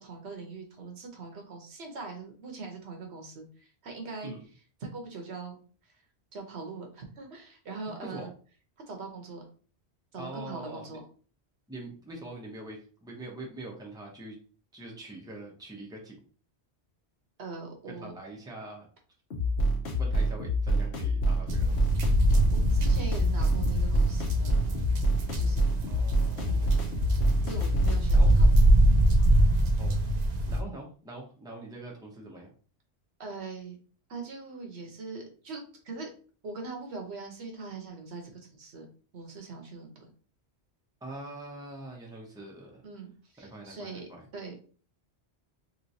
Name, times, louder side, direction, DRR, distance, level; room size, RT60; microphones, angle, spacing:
voice 1, 0.0-4.3 4.8-5.9 6.3-8.3 8.9-9.4 10.1-11.0 17.4-18.1 22.5-24.7 25.3-25.7 26.4-26.6 27.4-28.6 30.6-30.7 33.2-33.8 34.1-36.1 36.4-38.9 39.1-40.0 42.8-44.6, right 3 dB, 75° right, 2 dB, 1.1 m, -42 dB
voice 2, 7.8-8.3 10.2-11.0 11.7-14.4 14.7-16.2 17.9-18.9 20.0-21.9 25.9-26.8 28.1-28.3 29.8-29.9 30.5-32.5 41.0-42.8 43.4-44.2, right 2 dB, 5° right, -2 dB, 0.8 m, -43 dB
sound 1, 19.3-28.0, equal, 65° left, 1.0 m, -27 dB
sound 2, 21.5-30.6, right 1 dB, 50° right, 0.5 m, -24 dB
3.2 x 3.1 x 2.7 m, 0.41 s
omnidirectional pair, 1.1 m